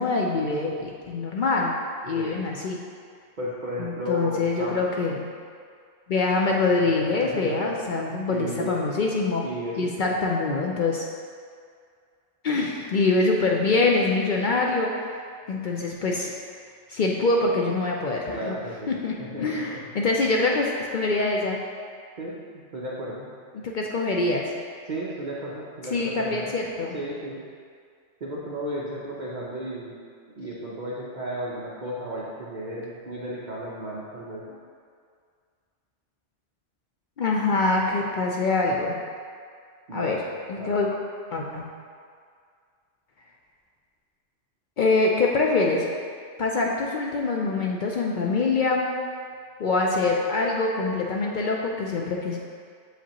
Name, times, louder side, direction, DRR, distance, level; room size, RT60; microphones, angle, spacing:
voice 1, 0.0-1.7 2.0-2.8 3.8-5.3 6.1-9.4 9.8-11.0 12.4-14.9 15.5-16.3 16.9-18.6 18.9-21.6 23.6-24.5 25.9-27.0 37.2-38.9 39.9-40.2 40.5-40.9 41.3-41.7 44.8-45.9 46.4-48.9 49.6-52.4, left 3 dB, 55° left, -1 dB, 0.6 m, -24 dB
voice 2, 3.4-4.9 7.0-7.7 8.3-8.8 9.4-10.1 18.3-19.8 22.2-22.3 22.7-23.3 24.9-26.5 26.9-27.4 28.2-29.9 30.4-34.4 39.9-40.2 40.6-40.7, equal, 45° right, -6 dB, 0.7 m, -33 dB
6.8 x 5.0 x 2.9 m, 2.1 s
omnidirectional pair, 1.2 m